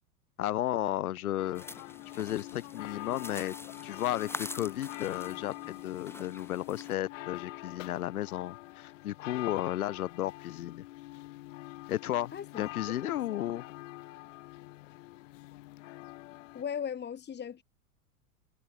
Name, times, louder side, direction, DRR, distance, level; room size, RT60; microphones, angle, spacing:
voice 1, 0.4-1.6 2.1-3.5 3.8-10.8 11.9-12.3 12.6-13.6, left 13 dB, 70° left, 0.7 m, -33 dB
sound 1, 1.4-16.6, left 19 dB, 55° left, 2.4 m, -45 dB
sound 2, 1.5-6.9, left 2 dB, 5° left, 2.2 m, -46 dB
voice 2, 12.3-12.6 13.0-13.5 16.5-17.6, left 8 dB, 20° left, 4.1 m, -38 dB
figure-of-eight pair, 95°, 45 cm